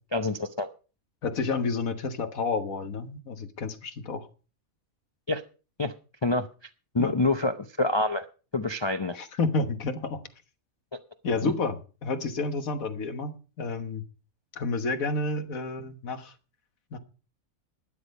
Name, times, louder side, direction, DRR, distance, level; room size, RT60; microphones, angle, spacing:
voice 1, 0.1-0.7 5.3-5.4 5.8-5.9 6.2-6.5 6.9-8.3 8.5-9.2 11.4-11.5, left 2 dB, 30° left, 8 dB, 0.5 m, -26 dB
voice 2, 1.2-4.3 7.0-7.1 9.1-10.2 11.2-14.0 14.5-16.3 16.9-17.0, left 3 dB, 80° left, 9 dB, 1.7 m, -30 dB
12.5 x 10.5 x 5.3 m, 0.36 s
omnidirectional pair, 1.4 m